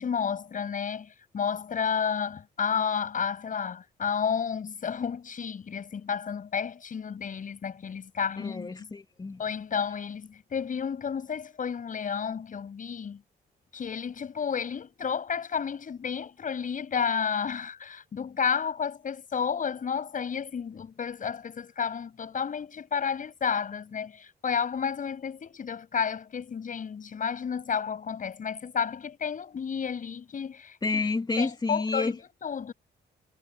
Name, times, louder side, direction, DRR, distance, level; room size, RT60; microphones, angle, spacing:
voice 1, 0.0-8.7 9.4-13.2 13.7-30.8 31.4-32.7, left 7 dB, 45° left, 7.6 m, -31 dB
voice 2, 8.4-9.4 30.8-32.1, left 3 dB, 25° left, 2.8 m, -29 dB
cardioid pair, 140°, 18 cm